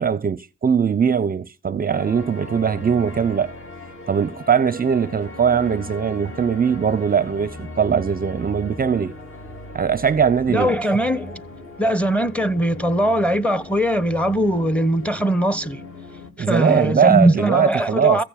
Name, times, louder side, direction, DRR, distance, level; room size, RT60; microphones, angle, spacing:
voice 1, 0.0-3.5 4.1-9.1 9.7-10.8 16.4-18.2, right 7 dB, 30° right, 0.6 m, -20 dB
sound 1, 1.9-16.3, left 2 dB, 45° left, 3.0 m, -38 dB
voice 2, 10.5-11.4 11.8-15.8 16.4-18.2, right 1 dB, 5° left, 1.1 m, -20 dB
15.5 x 6.7 x 7.3 m
cardioid pair, 90°, 30 cm